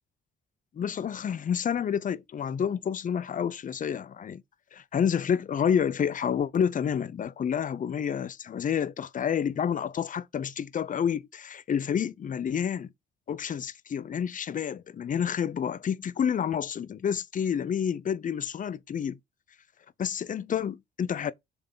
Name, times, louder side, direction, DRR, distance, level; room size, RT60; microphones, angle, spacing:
voice 1, 0.7-4.4 4.7-12.9 13.3-19.2 20.0-21.3, left 8 dB, 40° left, 0.6 m, -29 dB
6.8 x 3.6 x 3.9 m
cardioid pair, 90°, 20 cm